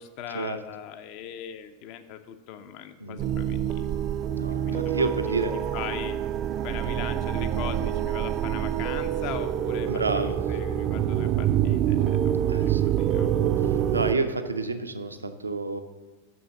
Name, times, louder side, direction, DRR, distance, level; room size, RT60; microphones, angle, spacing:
voice 1, 0.0-4.0 4.6-5.1 5.7-6.2 6.6-13.3, left 9 dB, 45° left, 10 dB, 0.5 m, -39 dB
sound 1, 3.2-14.1, right 10 dB, 35° right, 0.3 m, -26 dB
voice 2, 4.3-5.5 5.8-5.9 9.9-10.4 12.5-12.9 13.6-15.8, right 3 dB, 80° right, 9 dB, 0.6 m, -30 dB
6.2 x 6.2 x 6.8 m, 1.2 s
figure-of-eight pair, 90°, 0 cm